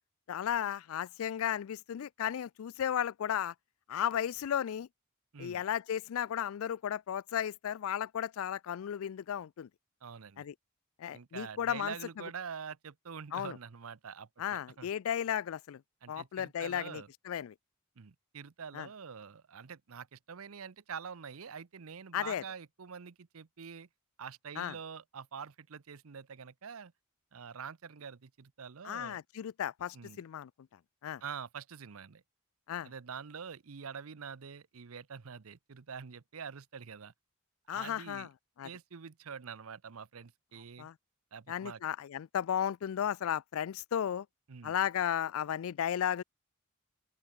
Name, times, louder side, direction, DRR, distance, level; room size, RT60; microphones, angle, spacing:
voice 1, 0.3-3.5 3.9-4.9 5.4-9.7 10.4-10.5 11.0-11.9 13.3-13.6 14.4-15.8 16.1-17.5 18.7-18.9 22.1-22.4 24.6-24.7 28.8-30.5 31.0-31.2 32.7-32.9 37.7-38.3 38.6-38.7 40.8-40.9 41.5-44.3 44.6-46.2, left 9 dB, 70° left, 0.3 m, -34 dB
voice 2, 10.0-10.5 11.1-14.9 16.0-17.1 18.0-23.9 24.2-26.9 27.3-29.2 29.9-30.2 31.2-32.2 32.8-37.1 37.7-38.3 38.6-40.9 41.3-41.8 44.5-44.7, right 6 dB, 80° right, 0.7 m, -46 dB
open air
head